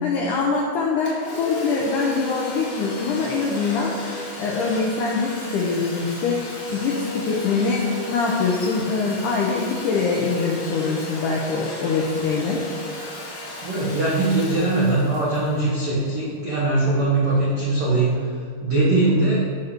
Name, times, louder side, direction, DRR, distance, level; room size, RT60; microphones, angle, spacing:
voice 1, 0.0-3.9 4.4-12.6, left 4 dB, 80° left, -2 dB, 1.8 m, -24 dB
Domestic sounds home sounds, 1.1-16.5, left 1 dB, 40° left, 3.1 m, -34 dB
voice 2, 13.6-18.3 18.6-19.4, right 2 dB, 55° right, -7 dB, 1.5 m, -21 dB
8.3 x 6.9 x 5.2 m, 2.2 s
omnidirectional pair, 4.8 m